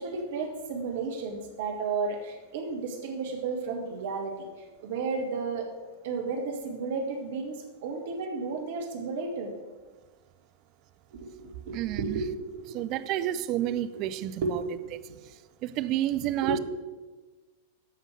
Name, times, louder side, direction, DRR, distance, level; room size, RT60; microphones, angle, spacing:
voice 1, 0.0-4.5 4.8-5.7 6.0-9.5 11.1-12.8 13.6-14.6 15.1-15.2 16.4-16.6, right 4 dB, 55° right, 1.5 m, -33 dB
voice 2, 11.7-12.2 12.7-14.6 14.9-15.1 15.6-16.6, right 13 dB, 40° right, 0.5 m, -30 dB
13.5 x 5.2 x 6.4 m
figure-of-eight pair, 95°, 0 cm